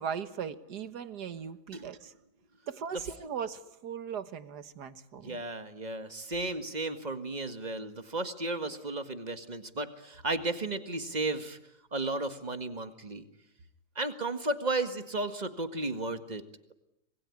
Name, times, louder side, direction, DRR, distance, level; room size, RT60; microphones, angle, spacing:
voice 1, 0.0-2.1 2.7-5.4, right 7 dB, 80° right, 12 dB, 1.9 m, -38 dB
voice 2, 5.2-11.6 11.9-13.3 14.0-16.4, right 2 dB, 25° right, 9 dB, 1.9 m, -34 dB
26.5 x 20.5 x 9.7 m, 0.82 s
omnidirectional pair, 1.7 m